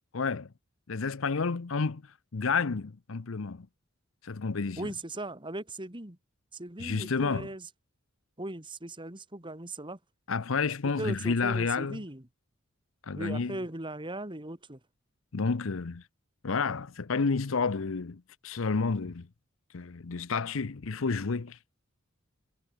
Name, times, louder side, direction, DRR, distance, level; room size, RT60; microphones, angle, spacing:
voice 1, 0.1-0.5 0.9-2.0 2.3-3.7 4.2-4.9 6.8-7.5 10.3-12.0 13.1-13.6 15.3-16.0 16.4-19.3 19.7-21.6, left 4 dB, 70° left, 0.7 m, -30 dB
voice 2, 4.8-6.2 6.5-7.7 8.4-10.0 11.0-12.2 13.1-14.8, right 1 dB, 25° right, 2.6 m, -38 dB
head